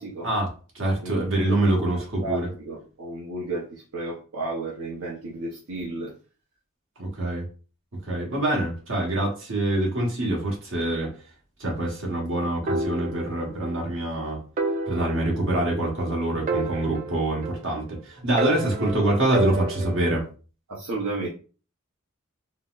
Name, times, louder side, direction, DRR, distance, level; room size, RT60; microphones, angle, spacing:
voice 1, 0.2-2.5 7.0-7.4 8.1-11.1 11.6-14.4 14.9-20.2, right 1 dB, 65° right, -1 dB, 1.1 m, -25 dB
voice 2, 1.0-6.1 18.5-19.2 20.7-21.3, right 2 dB, 80° right, -5 dB, 0.7 m, -33 dB
sound 1, 12.7-13.8 14.1-14.2 14.6-16.1 16.5-17.9 18.4-20.2, right 2 dB, 40° right, 0.3 m, -30 dB
3.9 x 2.0 x 2.4 m, 0.37 s
head